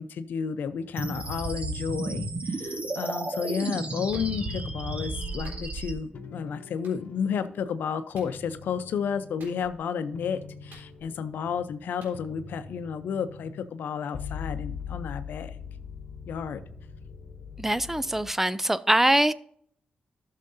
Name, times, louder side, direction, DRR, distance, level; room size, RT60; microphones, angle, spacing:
voice 1, 0.0-15.6 16.3-16.6, left 7 dB, 85° left, 11 dB, 0.6 m, -32 dB
sound 1, 0.7-1.9 2.1-3.9 4.1-5.8 6.1-7.7 8.1-9.7 10.1-18.4, left 6 dB, 65° left, 1.2 m, -43 dB
sound 2, 1.0-5.9, right 2 dB, 40° right, 1.5 m, -33 dB
Clapping, 4.1-4.3 5.4-5.7 6.8-7.0 8.1-8.4 9.4-9.8 10.7-11.3 12.0-12.2, right 2 dB, 85° right, 3.6 m, -52 dB
voice 2, 17.6-19.3, right 1 dB, 10° right, 16 dB, 0.4 m, -23 dB
13.0 x 6.5 x 2.7 m, 0.63 s
cardioid pair, 80°, 3 cm